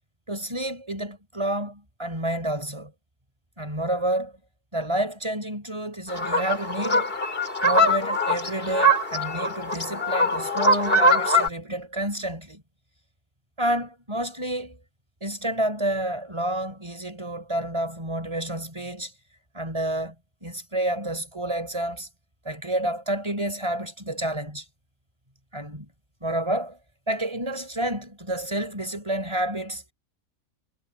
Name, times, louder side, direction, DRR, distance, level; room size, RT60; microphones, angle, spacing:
voice 1, 0.3-2.9 3.6-4.3 4.7-7.2 7.6-12.6 13.6-14.8 15.2-19.1 19.5-20.2 20.4-22.1 22.4-24.6 25.5-25.9 26.2-26.8 27.1-29.8, right 1 dB, 20° right, 5.7 m, -29 dB
sound 1, 6.1-11.5, equal, 40° left, 3.5 m, -22 dB
omnidirectional pair, 1.5 m